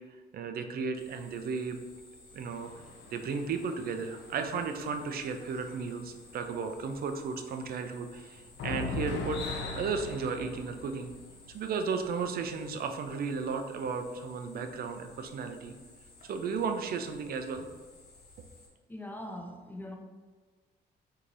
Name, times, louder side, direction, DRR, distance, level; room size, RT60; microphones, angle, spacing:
voice 1, 0.3-1.8 2.3-2.7 3.1-11.1 11.5-15.8 16.3-17.7, right 5 dB, 55° right, 6 dB, 0.4 m, -34 dB
sound 1, 0.9-18.7, left 2 dB, 60° left, 0.9 m, -56 dB
sound 2, 2.5-6.3 6.7-6.8 7.1-7.6 8.3-11.7 12.5-12.6 13.1-13.2, left 3 dB, 85° left, 0.6 m, -40 dB
voice 2, 18.9-20.0, left 1 dB, 10° left, 3 dB, 0.6 m, -41 dB
4.5 x 2.7 x 2.6 m, 1.4 s
cardioid pair, 85°, 18 cm